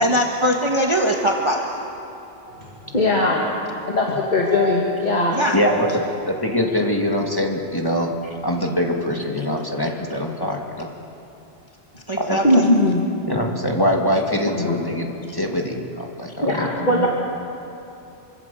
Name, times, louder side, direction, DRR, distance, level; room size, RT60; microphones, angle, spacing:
voice 1, 0.0-1.7 5.3-5.6 12.1-12.6, equal, 25° right, 0 dB, 1.6 m, -21 dB
voice 2, 2.5-3.5 3.9-5.4 12.4-13.0 14.5-14.8 16.4-17.1, left 1 dB, 40° left, -2 dB, 2.5 m, -20 dB
voice 3, 5.5-5.9 6.3-8.1 8.4-10.9 12.3-12.4 13.2-17.1, left 1 dB, 20° left, 0 dB, 2.2 m, -23 dB
26.5 x 25.0 x 6.9 m, 2.9 s
omnidirectional pair, 1.2 m